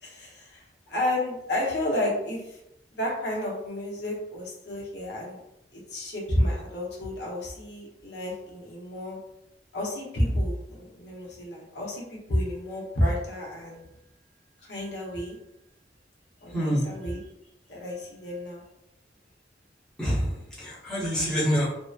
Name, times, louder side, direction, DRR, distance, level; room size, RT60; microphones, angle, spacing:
voice 1, 0.0-2.6 2.9-5.4 5.7-9.2 9.7-13.8 14.6-15.4 16.4-17.2 17.7-18.6, left 1 dB, 75° left, -3 dB, 0.8 m, -31 dB
voice 2, 16.5-16.9 20.0-21.7, equal, 5° left, -10 dB, 0.8 m, -26 dB
2.8 x 2.1 x 2.3 m, 0.83 s
head